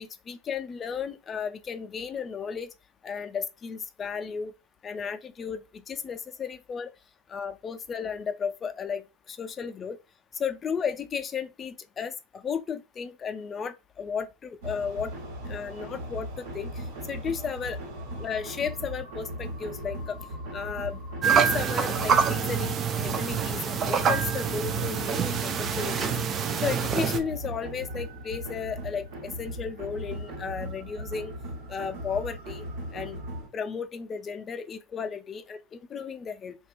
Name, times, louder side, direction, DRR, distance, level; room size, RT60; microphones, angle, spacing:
voice 1, 0.0-2.7 3.0-4.5 4.8-6.9 7.3-10.0 10.4-15.1 15.5-17.8 18.2-20.2 20.5-26.1 26.6-31.3 31.7-32.6 32.9-33.2 33.5-36.6, left 6 dB, 30° left, 0.4 m, -34 dB
sound 1, 14.6-33.5, right 1 dB, 65° right, 1.3 m, -38 dB
sound 2, 21.2-27.2, right 7 dB, 35° right, 0.4 m, -26 dB
2.8 x 2.3 x 2.4 m
hypercardioid pair, 85°, 0 cm